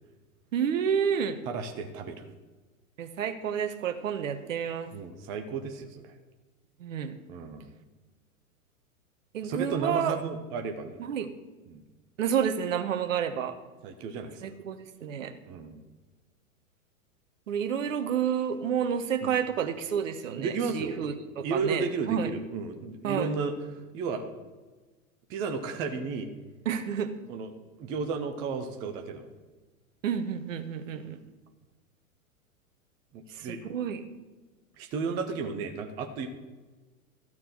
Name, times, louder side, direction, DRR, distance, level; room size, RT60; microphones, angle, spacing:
voice 1, 0.5-1.4 3.0-4.9 6.8-7.1 9.3-10.2 11.0-11.3 12.2-13.6 14.4-15.3 17.5-22.3 23.0-23.3 26.6-27.1 30.0-31.2 33.3-34.0, right 8 dB, 65° right, 9 dB, 1.2 m, -30 dB
voice 2, 1.5-2.2 4.9-6.2 7.3-7.7 9.4-11.0 11.7-11.8 13.8-14.3 15.5-15.8 19.2-19.3 20.4-21.0 21.4-23.5 23.9-24.2 25.3-26.3 27.3-27.5 27.8-29.3 33.1-33.6 34.8-36.3, right 5 dB, 10° right, 5 dB, 0.3 m, -33 dB
13.5 x 4.6 x 7.5 m, 1.2 s
figure-of-eight pair, 100°, 43 cm